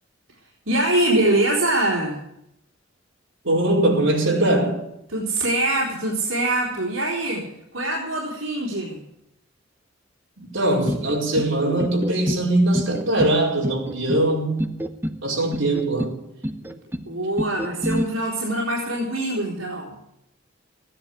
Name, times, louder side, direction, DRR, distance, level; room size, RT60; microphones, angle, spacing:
voice 1, 0.7-2.2 5.1-9.0 15.3-15.4 16.6-16.7 17.1-20.0, right 1 dB, 90° right, 3.8 m, -24 dB
voice 2, 3.4-4.8 10.4-14.7 15.2-16.2, right 1 dB, 70° right, 4.9 m, -21 dB
sound 1, 10.9-11.5 11.8-12.4 12.7-13.4 13.6-14.3 14.6-15.2 15.5-16.1 16.4-17.1 17.4-18.0, equal, 10° right, 0.9 m, -28 dB
15.5 x 10.5 x 8.4 m
head